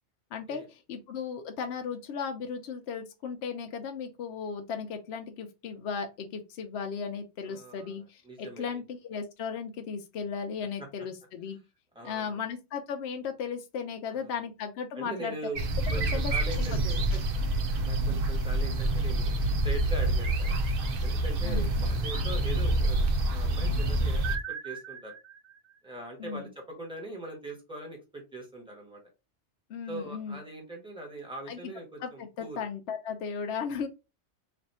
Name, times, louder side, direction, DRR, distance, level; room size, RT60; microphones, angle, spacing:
voice 1, 0.3-11.6 12.0-15.4 16.1-16.3 16.7-16.8 21.4-21.6 26.2-26.5 29.7-30.4 31.5-31.6 32.0-33.9, left 6 dB, 70° left, 5 dB, 0.8 m, -36 dB
voice 2, 7.4-8.8 11.9-12.4 14.1-14.3 14.9-15.6 15.9-17.0 17.8-20.6 21.0-25.2 25.8-29.0 29.9-32.7, right 2 dB, 5° right, -1 dB, 1.2 m, -41 dB
sound 1, 15.6-24.4, right 1 dB, 55° right, 0.8 m, -27 dB
sound 2, 20.2-21.4 22.0-23.2 24.2-25.7, right 7 dB, 80° right, 1.1 m, -40 dB
3.3 x 2.5 x 4.1 m, 0.27 s
omnidirectional pair, 1.2 m